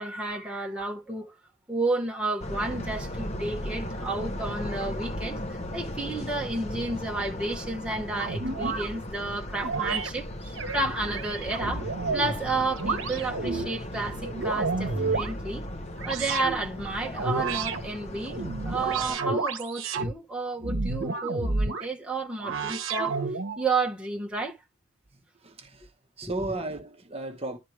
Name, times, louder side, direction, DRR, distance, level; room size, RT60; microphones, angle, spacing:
voice 1, 0.0-1.3 1.7-15.6 16.0-23.2 23.6-24.6 26.2-26.3, right 3 dB, 5° right, 1.2 m, -31 dB
sound 1, 2.4-19.2, left 1 dB, 30° left, 0.9 m, -36 dB
sound 2, 8.2-8.9 9.6-10.1 10.5-12.4 12.8-13.7 14.2-15.3 16.0-16.6 17.1-17.8 18.3-20.1 20.6-21.9 22.4-23.6, right 3 dB, 60° right, 1.1 m, -30 dB
voice 2, 25.1-25.9 26.2-27.6, right 2 dB, 25° right, 1.1 m, -35 dB
11.5 x 4.3 x 3.3 m
head